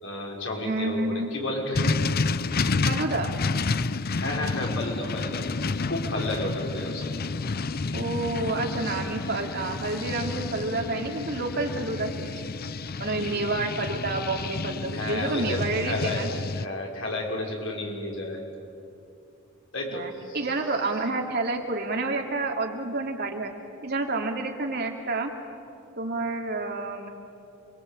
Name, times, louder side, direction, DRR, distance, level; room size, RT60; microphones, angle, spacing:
voice 1, 0.0-2.0 4.2-5.4 5.9-7.1 13.0-13.7 14.9-16.3 16.5-18.4 19.7-20.4, left 1 dB, 70° left, -1 dB, 5.8 m, -32 dB
voice 2, 0.6-1.3 2.9-3.3 7.9-12.3 13.0-16.3 19.9-23.5 23.8-25.3 26.0-27.1, right 2 dB, 55° right, 2 dB, 2.9 m, -29 dB
sound 1, 1.7-16.7, left 3 dB, 50° left, 0.7 m, -30 dB
28.5 x 23.0 x 8.6 m, 2.6 s
head